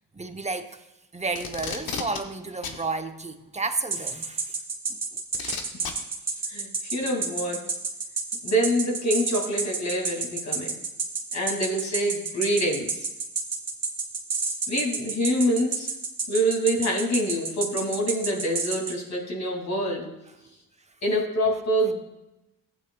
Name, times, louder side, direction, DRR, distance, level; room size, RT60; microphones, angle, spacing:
voice 1, 0.1-0.8 1.1-4.6 4.9-5.0, right 3 dB, 20° right, 7 dB, 0.8 m, -32 dB
Packing tape duct tape, 1.3-2.2 2.6-2.8 4.1-4.2 5.3-5.9 7.0-7.1, left 6 dB, 80° left, 1.1 m, -33 dB
sound 1, 3.9-18.9, right 4 dB, 45° right, 1.9 m, -28 dB
voice 2, 5.4-5.7 6.5-7.6 8.4-10.7 11.3-12.9 14.7-15.9 16.3-20.1 21.0-22.0, equal, 50° left, 0 dB, 2.6 m, -26 dB
14.5 x 8.9 x 2.3 m, 0.93 s
cardioid pair, 75°, 35 cm